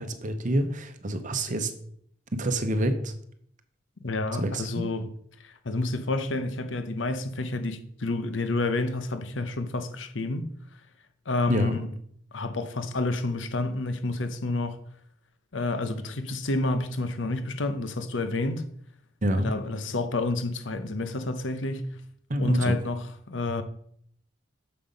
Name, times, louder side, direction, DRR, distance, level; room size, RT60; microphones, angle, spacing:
voice 1, 0.0-1.7 2.3-3.1 4.4-4.9 11.5-11.8 19.2-19.5 22.3-22.8, right 1 dB, 45° right, 0.8 m, -27 dB
voice 2, 4.0-5.1 5.4-10.5 11.3-11.9 12.3-14.8 15.5-18.6 19.4-21.9 22.4-23.6, left 2 dB, 75° left, 0.8 m, -29 dB
6.7 x 5.6 x 5.2 m
head